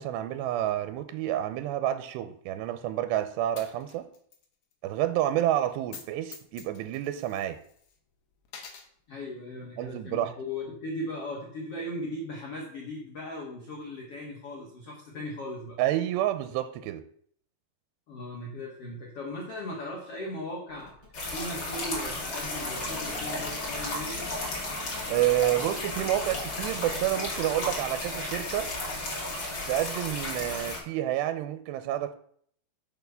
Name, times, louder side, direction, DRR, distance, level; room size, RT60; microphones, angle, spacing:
voice 1, 0.0-4.1 4.8-7.6 9.8-10.3 15.8-17.0 25.1-28.7 29.7-32.2, right 13 dB, 80° right, 11 dB, 2.7 m, -29 dB
Coin (dropping), 3.6-4.4 4.7-4.8 5.8-6.1 6.3-7.9 8.4-8.9, left 6 dB, 75° left, 1.6 m, -46 dB
voice 2, 9.1-15.8 18.1-20.9 21.3-24.3, left 1 dB, 55° left, -2 dB, 1.8 m, -38 dB
sound 1, 20.7-28.6, left 3 dB, 10° right, 3.2 m, -50 dB
sound 2, 21.1-30.8, left 2 dB, 35° left, 2.7 m, -34 dB
7.1 x 6.0 x 6.7 m, 0.62 s
omnidirectional pair, 5.0 m